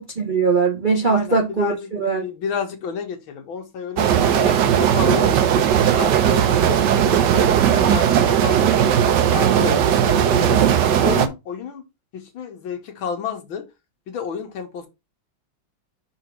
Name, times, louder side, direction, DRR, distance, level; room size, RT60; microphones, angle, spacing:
voice 1, 0.0-2.2, right 4 dB, 40° right, 0.7 m, -21 dB
voice 2, 1.1-5.4 5.7-10.6 11.0-11.8 12.1-13.6 14.1-14.9, left 7 dB, 80° left, 2.0 m, -31 dB
sound 1, 4.0-11.3, right 9 dB, 65° right, 1.2 m, -17 dB
5.7 x 4.0 x 4.5 m
omnidirectional pair, 2.2 m